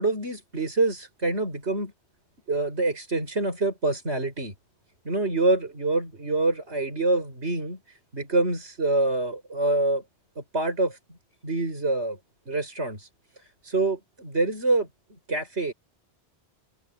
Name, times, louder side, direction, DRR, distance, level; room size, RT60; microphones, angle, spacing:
voice 1, 0.0-1.9 2.5-4.5 5.0-7.8 8.1-10.0 10.4-11.0 11.4-12.2 12.5-13.1 13.6-14.9 15.3-15.7, right 2 dB, 75° right, 6.1 m, -26 dB
omnidirectional pair, 1.1 m